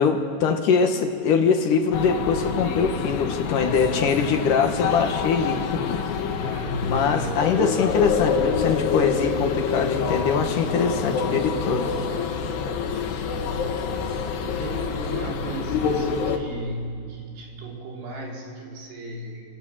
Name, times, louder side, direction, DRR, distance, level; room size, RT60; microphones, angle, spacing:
voice 1, 0.0-6.0 6.8-11.9, left 6 dB, 60° left, 5 dB, 2.7 m, -23 dB
sound 1, 1.9-16.4, left 5 dB, 80° left, 3.6 m, -27 dB
voice 2, 6.2-7.5 13.2-13.8 14.4-19.4, right 1 dB, 80° right, -1 dB, 6.0 m, -35 dB
28.0 x 26.0 x 7.5 m, 2.3 s
omnidirectional pair, 4.7 m